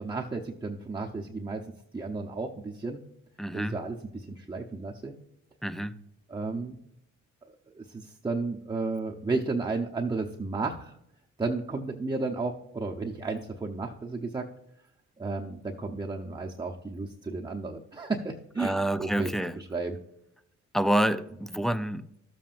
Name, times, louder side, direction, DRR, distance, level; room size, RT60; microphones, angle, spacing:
voice 1, 0.0-1.6 1.9-3.0 3.5-5.1 6.3-6.8 7.7-11.0 11.4-14.5 15.2-19.3 19.6-20.0, right 3 dB, 15° right, 0.8 m, -33 dB
voice 2, 3.4-3.8 5.6-6.0 18.6-19.6 20.7-22.0, right 1 dB, ahead, 0.4 m, -28 dB
13.0 x 7.4 x 2.5 m
cardioid pair, 90°, 30 cm